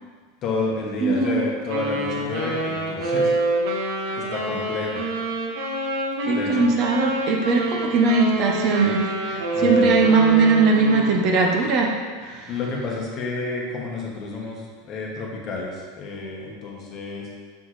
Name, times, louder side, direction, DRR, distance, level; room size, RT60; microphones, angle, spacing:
voice 1, 0.4-3.3 4.2-5.1 6.3-6.7 9.5-10.0 12.5-17.3, left 3 dB, 25° left, -2 dB, 1.1 m, -30 dB
voice 2, 1.0-1.4 4.1-4.2 6.2-11.9 12.2-12.5, right 4 dB, 35° right, 1 dB, 0.7 m, -20 dB
Wind instrument woodwind instrument, 1.7-11.3, right 1 dB, 65° right, 1.4 m, -26 dB
7.0 x 6.0 x 3.2 m, 1.5 s
supercardioid pair, 175°, 0 cm